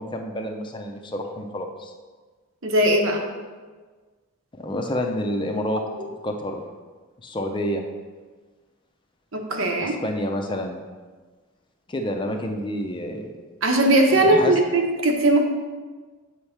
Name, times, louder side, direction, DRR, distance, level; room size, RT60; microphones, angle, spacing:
voice 1, 0.0-1.9 4.5-6.6 7.2-7.8 9.8-10.8 11.9-13.3 14.2-14.6, left 1 dB, 20° left, 3 dB, 0.5 m, -28 dB
voice 2, 2.6-3.2 9.3-9.9 13.6-15.4, right 1 dB, 65° right, 2 dB, 0.9 m, -19 dB
8.0 x 3.3 x 5.7 m, 1.4 s
head